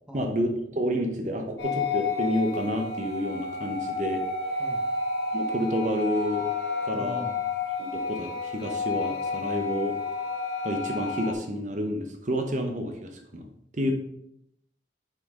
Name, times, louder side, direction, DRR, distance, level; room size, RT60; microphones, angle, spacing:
voice 1, 0.1-4.2 5.3-6.5 6.8-7.2 7.8-10.0 10.6-13.5 13.7-13.9, equal, 45° right, 4 dB, 0.8 m, -29 dB
sound 1, 1.6-11.3, left 4 dB, 75° left, 1.4 m, -31 dB
voice 2, 4.6-4.9 6.9-7.4 13.8-13.9, equal, 5° right, 1 dB, 0.9 m, -41 dB
8.6 x 5.2 x 3.6 m, 0.75 s
head